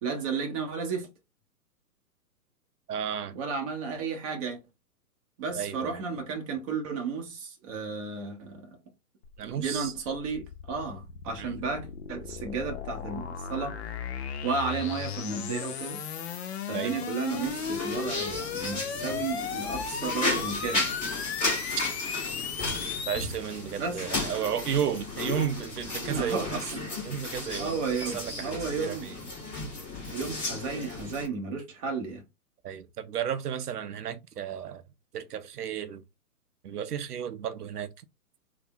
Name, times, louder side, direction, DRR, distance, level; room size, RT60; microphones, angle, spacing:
voice 1, 0.0-1.1 3.3-4.6 5.4-8.8 9.4-13.8 14.4-16.0 16.7-20.9 23.8-24.0 26.0-26.6 27.6-29.1 30.1-32.2, right 5 dB, 25° right, 0.6 m, -33 dB
voice 2, 2.9-3.4 5.5-6.0 9.4-9.9 11.4-11.6 16.7-16.9 23.1-26.5 27.0-27.8 28.1-29.1 32.6-34.8 35.1-36.0 36.6-37.9, right 9 dB, 80° right, 0.6 m, -33 dB
sound 1, 9.2-23.4, left 7 dB, 45° left, 0.5 m, -36 dB
sound 2, 17.3-31.3, left 2 dB, 15° left, 1.3 m, -34 dB
3.3 x 2.0 x 2.7 m
figure-of-eight pair, 130°, 46 cm